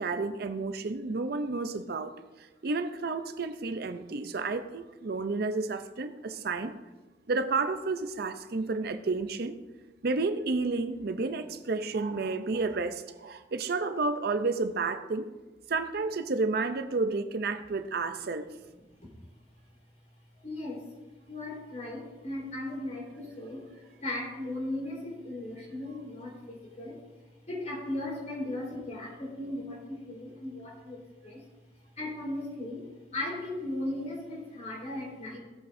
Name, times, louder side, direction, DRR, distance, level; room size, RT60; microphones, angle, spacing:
voice 1, 0.0-6.7 7.3-9.5 10.0-15.3 15.7-18.5, right 3 dB, 55° right, 0.5 m, -31 dB
voice 2, 20.4-21.0 21.3-27.0 27.5-31.0 31.2-31.4 32.0-35.4, left 1 dB, 40° left, 3.8 m, -37 dB
16.0 x 8.1 x 2.6 m
head